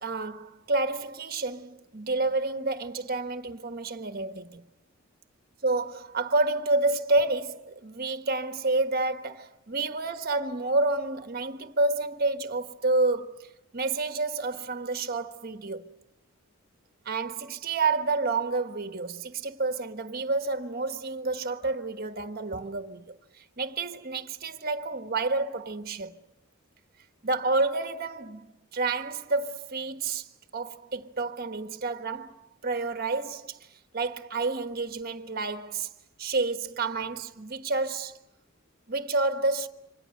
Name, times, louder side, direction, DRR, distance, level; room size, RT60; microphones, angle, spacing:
voice 1, 0.0-4.6 5.6-15.9 17.0-26.2 27.2-30.3 30.5-32.4 32.6-33.6 33.9-35.9 36.2-38.1 38.9-39.7, right 3 dB, 45° right, 1.3 m, -29 dB
27.0 x 25.5 x 6.6 m
head